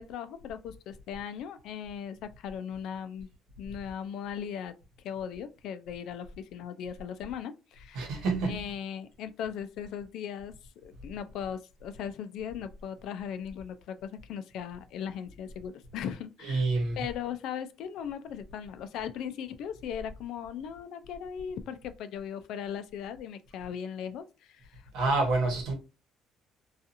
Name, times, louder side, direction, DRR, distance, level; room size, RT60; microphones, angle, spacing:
voice 1, 0.0-3.3 3.6-4.7 5.0-10.5 10.8-16.7 17.0-24.9, left 8 dB, 60° left, 0.3 m, -38 dB
voice 2, 7.9-8.6 16.4-17.1 24.9-25.7, right 3 dB, 90° right, 1.0 m, -28 dB
2.7 x 2.3 x 2.5 m
cardioid pair, 180°, 0 cm